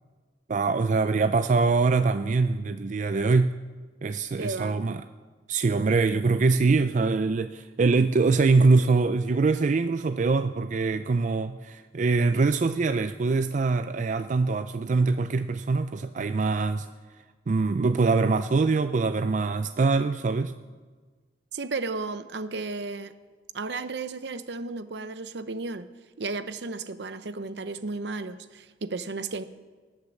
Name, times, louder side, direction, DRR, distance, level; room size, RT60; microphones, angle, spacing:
voice 1, 0.5-3.5 4.0-5.0 5.5-16.9 17.5-20.5, right 4 dB, 45° right, 10 dB, 0.4 m, -23 dB
voice 2, 4.4-4.8 21.5-23.1 23.5-25.9 26.2-29.4, right 3 dB, 70° right, 12 dB, 0.7 m, -33 dB
19.0 x 6.6 x 7.2 m, 1.4 s
head